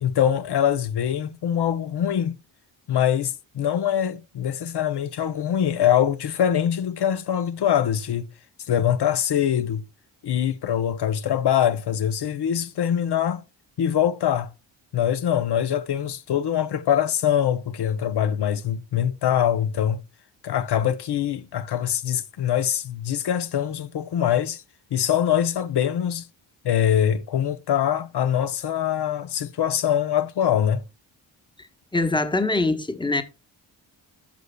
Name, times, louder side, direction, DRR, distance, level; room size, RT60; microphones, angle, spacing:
voice 1, 0.0-2.4 2.9-8.3 8.7-9.8 10.2-13.4 13.8-14.5 14.9-20.0 20.4-24.6 24.9-26.3 26.6-30.8, left 9 dB, 60° left, 0.8 m, -23 dB
voice 2, 31.9-33.2, left 2 dB, 10° left, 1.0 m, -23 dB
10.5 x 6.6 x 2.2 m
supercardioid pair, 55°, 46 cm